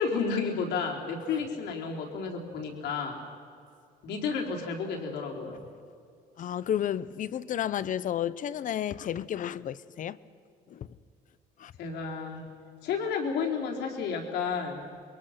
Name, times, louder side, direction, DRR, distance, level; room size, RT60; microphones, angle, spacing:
voice 1, 0.0-3.2 4.0-5.6 11.8-12.4 12.8-14.8, left 5 dB, 80° left, 4.0 m, -31 dB
voice 2, 6.4-10.2 10.7-10.9 11.6-11.7, left 10 dB, 50° left, 0.8 m, -32 dB
28.5 x 22.5 x 5.9 m
cardioid pair, 110°, 17 cm